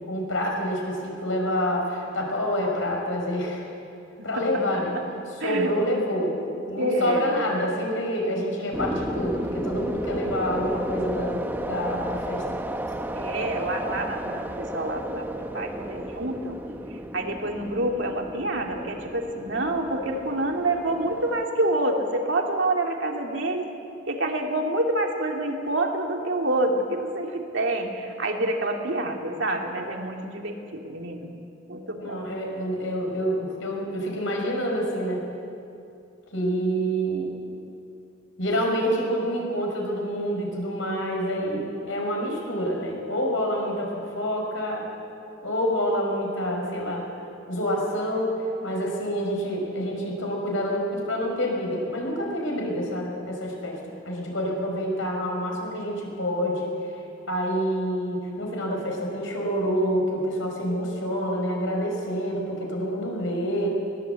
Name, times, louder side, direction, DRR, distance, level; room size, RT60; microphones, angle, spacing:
voice 1, 0.1-3.7 4.2-4.9 5.4-6.3 6.6-12.4 32.0-35.3 36.3-37.3 38.4-44.9 45.4-47.1 47.5-48.4 48.6-56.7 57.3-63.7, equal, 75° left, 0 dB, 5.7 m, -27 dB
voice 2, 5.4-5.8 6.8-7.4 13.1-16.6 16.9-23.7 24.1-31.3 31.7-32.2, right 1 dB, 65° right, 2 dB, 2.5 m, -27 dB
sound 1, 8.7-21.5, right 1 dB, 10° right, 0.9 m, -33 dB
21.0 x 18.0 x 8.3 m, 2.6 s
head